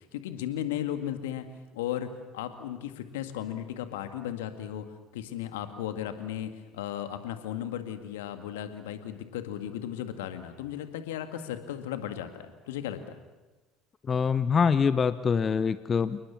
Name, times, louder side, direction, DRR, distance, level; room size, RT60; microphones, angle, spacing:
voice 1, 0.0-1.4 1.7-4.9 5.1-13.2, left 11 dB, 75° left, 8 dB, 2.0 m, -35 dB
voice 2, 14.1-16.2, left 6 dB, 35° left, 14 dB, 0.8 m, -24 dB
29.0 x 19.5 x 7.2 m, 1.2 s
figure-of-eight pair, 60°, 0 cm